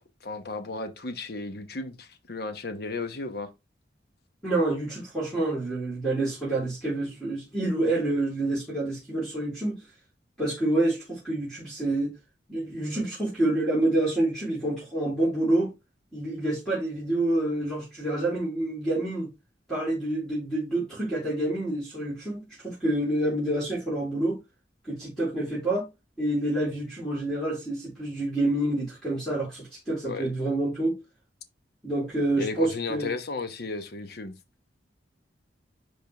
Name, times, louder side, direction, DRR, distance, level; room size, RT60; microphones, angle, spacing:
voice 1, 0.0-3.5 30.0-30.3 32.4-34.3, left 3 dB, 60° left, 1.0 m, -34 dB
voice 2, 4.4-9.8 10.4-12.1 12.5-15.7 16.1-19.3 19.7-24.4 24.9-25.9 26.2-31.0 31.8-33.1, right 1 dB, 5° left, 3.7 m, -27 dB
10.5 x 3.8 x 3.5 m
head